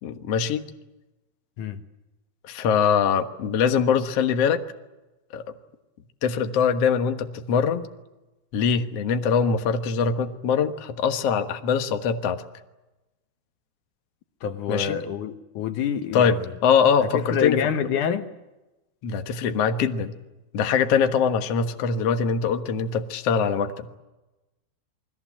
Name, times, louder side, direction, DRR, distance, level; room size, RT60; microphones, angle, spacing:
voice 1, 0.0-0.6 2.5-4.6 5.3-5.4 6.2-7.9 8.5-12.4 14.7-15.0 16.1-17.6 19.0-20.2 20.5-23.9, left 6 dB, 85° left, 1.3 m, -23 dB
voice 2, 14.4-16.4 17.0-18.3, left 7 dB, 65° left, 2.1 m, -27 dB
29.5 x 21.5 x 7.5 m
omnidirectional pair, 5.1 m